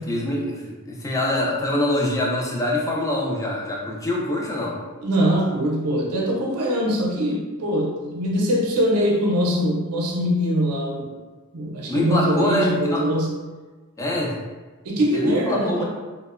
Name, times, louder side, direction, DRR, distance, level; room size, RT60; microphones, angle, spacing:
voice 1, 0.1-4.8 11.9-13.0 14.0-14.4 15.1-15.8, left 1 dB, 15° left, -2 dB, 0.3 m, -24 dB
voice 2, 5.0-11.1 11.5-13.3 14.8-15.8, equal, 85° right, 0 dB, 0.5 m, -22 dB
2.8 x 2.0 x 2.4 m, 1.3 s
head